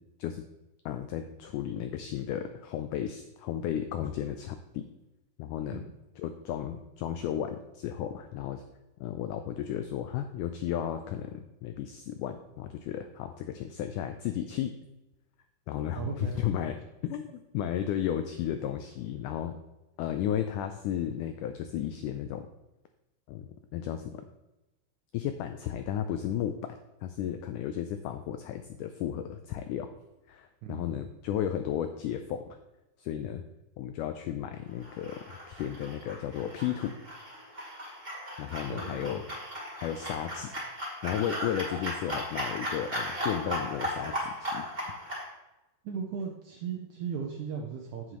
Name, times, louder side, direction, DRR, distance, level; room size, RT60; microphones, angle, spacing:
voice 1, 0.9-4.8 5.4-5.8 6.2-8.6 9.0-14.7 15.7-16.8 17.0-19.6 20.0-22.5 23.3-24.3 25.1-29.9 30.3-32.5 33.0-33.4 33.8-36.9 38.4-39.2 39.8-40.5 41.0-44.6, left 10 dB, 90° left, 8 dB, 1.8 m, -34 dB
voice 2, 16.0-16.5 30.6-31.0 38.7-39.2 45.8-48.2, right 6 dB, 80° right, 2 dB, 1.7 m, -37 dB
sound 1, 34.8-45.3, equal, 20° right, 2.0 m, -37 dB
8.5 x 7.7 x 3.0 m, 0.98 s
omnidirectional pair, 4.2 m